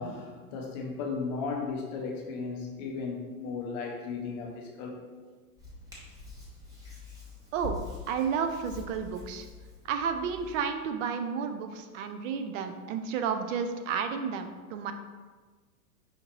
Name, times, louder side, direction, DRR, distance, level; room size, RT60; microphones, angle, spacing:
voice 1, 0.0-5.1, left 4 dB, 35° left, 0 dB, 0.4 m, -35 dB
Hands, 5.6-10.6, left 3 dB, 10° right, 0.7 m, -45 dB
voice 2, 8.1-9.5 9.8-14.9, right 6 dB, 55° right, 7 dB, 0.5 m, -31 dB
5.0 x 2.8 x 2.9 m, 1.4 s
hypercardioid pair, 130°, 46 cm